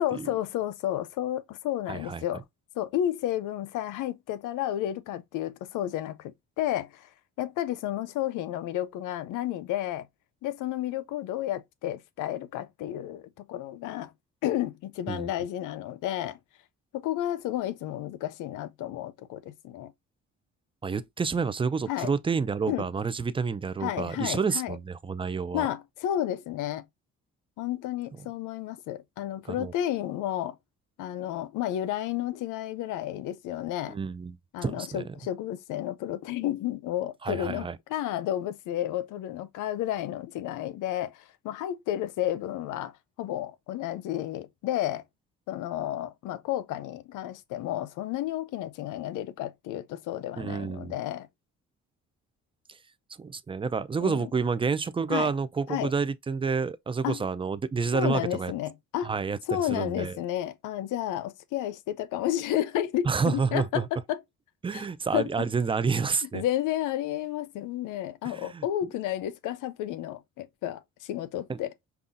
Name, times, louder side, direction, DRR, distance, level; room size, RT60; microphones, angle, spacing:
voice 1, 0.0-2.4 2.8-7.1 7.4-10.1 10.4-14.1 14.4-16.4 16.9-19.9 21.9-22.1 22.7-22.9 23.8-24.8 25.5-26.8 27.6-30.6 31.0-34.0 34.5-42.9 43.2-45.0 45.5-51.3 54.0-54.3 55.1-55.3 55.7-55.9 57.0-57.2 57.9-59.1 59.5-64.2 64.7-64.9 65.1-65.3 66.2-71.7, left 12 dB, 85° left, 0.5 m, -31 dB
voice 2, 1.9-2.2 15.1-15.3 20.8-25.7 29.5-29.7 33.9-34.4 34.6-35.1 37.2-37.8 50.4-51.0 53.2-58.5 59.0-59.4 59.7-60.2 63.0-63.9 64.6-66.4 68.4-68.6 71.5-71.6, right 5 dB, 20° right, 0.4 m, -29 dB
5.4 x 2.4 x 2.5 m
cardioid pair, 90°, 30 cm